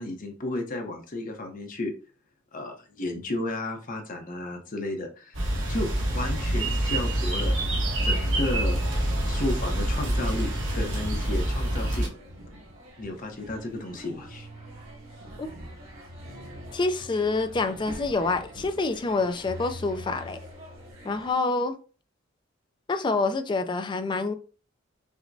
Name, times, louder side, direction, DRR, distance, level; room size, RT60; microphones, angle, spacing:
voice 1, 0.0-1.9 2.5-5.4 5.7-7.5 8.0-12.1 13.0-14.5, left 2 dB, 45° left, 0.7 m, -33 dB
sound 1, 5.3-12.1, right 1 dB, 70° right, 1.2 m, -26 dB
sound 2, 7.4-21.3, equal, 85° right, 1.8 m, -44 dB
voice 2, 16.7-20.4 21.0-21.8 22.9-24.3, left 3 dB, 25° left, 0.3 m, -27 dB
5.8 x 2.1 x 2.6 m
head